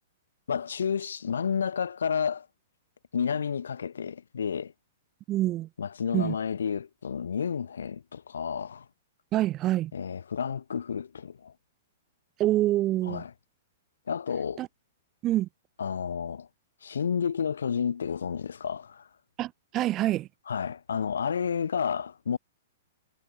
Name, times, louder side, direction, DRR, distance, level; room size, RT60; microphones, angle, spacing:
voice 1, 0.5-2.5 3.1-4.7 5.8-8.8 9.9-11.5 13.0-13.3 14.1-14.6 15.8-16.5 16.8-19.1 20.5-22.4, left 7 dB, 80° left, 1.1 m, -31 dB
voice 2, 5.3-5.7 6.1-6.4 9.3-9.9 12.4-13.2 14.6-14.7 15.2-15.5 19.4-20.3, right 15 dB, 30° right, 0.6 m, -26 dB
hypercardioid pair, 120°, 0 cm